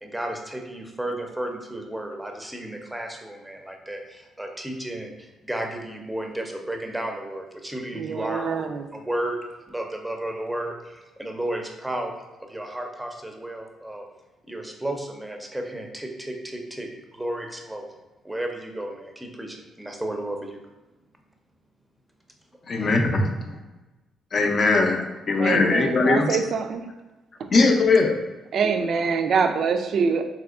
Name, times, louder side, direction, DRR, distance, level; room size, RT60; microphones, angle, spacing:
voice 1, 0.0-8.5 8.9-9.4 9.7-12.1 12.4-14.0 14.5-17.9 18.2-20.6, right 1 dB, 5° right, 2 dB, 0.5 m, -33 dB
voice 2, 7.9-9.0 25.4-26.8 27.4-27.5 28.5-30.2, right 5 dB, 60° right, 7 dB, 0.3 m, -25 dB
voice 3, 22.7-23.6 24.3-26.3 27.5-28.2, left 3 dB, 45° left, 3 dB, 0.5 m, -20 dB
3.5 x 2.9 x 2.4 m, 1.1 s
cardioid pair, 90°, 0 cm